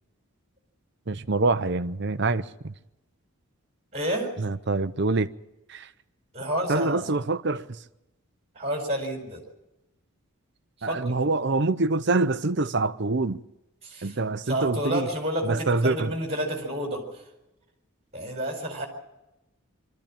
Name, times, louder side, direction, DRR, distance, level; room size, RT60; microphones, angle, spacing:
voice 1, 1.1-2.7 4.4-5.3 5.7-5.9 6.7-7.6 10.8-13.4 14.0-15.1 15.4-16.1, right 3 dB, 50° right, 0.7 m, -25 dB
voice 2, 3.9-4.3 6.3-7.0 8.5-9.4 10.8-11.1 13.8-14.2 14.5-17.0 18.1-18.9, equal, 30° right, 4.6 m, -29 dB
23.5 x 13.5 x 8.8 m
head